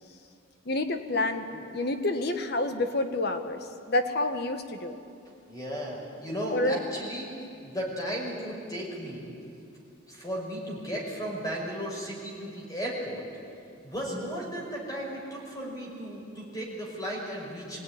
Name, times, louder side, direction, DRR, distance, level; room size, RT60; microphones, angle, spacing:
voice 1, 0.6-4.9 6.5-6.8, left 2 dB, 55° left, 7 dB, 1.5 m, -28 dB
voice 2, 5.2-9.3 10.1-13.2 13.8-17.8, equal, 20° left, -2 dB, 5.5 m, -35 dB
24.5 x 16.5 x 10.0 m, 2.5 s
head